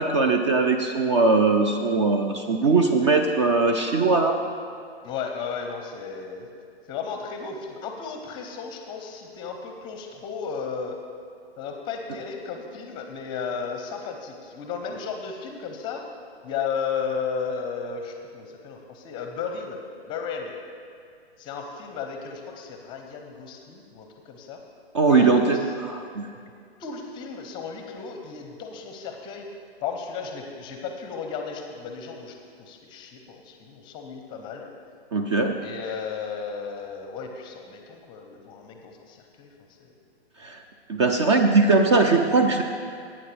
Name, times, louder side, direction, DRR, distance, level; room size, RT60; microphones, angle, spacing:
voice 1, 0.0-4.4 24.9-25.6 26.2-26.3 35.1-35.6 40.4-40.6 40.9-42.6, right 3 dB, 25° right, 5 dB, 0.5 m, -20 dB
voice 2, 5.0-6.5 6.9-11.0 11.6-16.0 16.4-19.8 20.1-20.5 21.4-24.6 25.1-25.6 26.8-29.5 29.8-34.7 35.6-39.5 39.8-39.9, left 6 dB, 15° left, 4 dB, 0.7 m, -34 dB
17.5 x 8.9 x 3.4 m, 2.3 s
figure-of-eight pair, 130°, 33 cm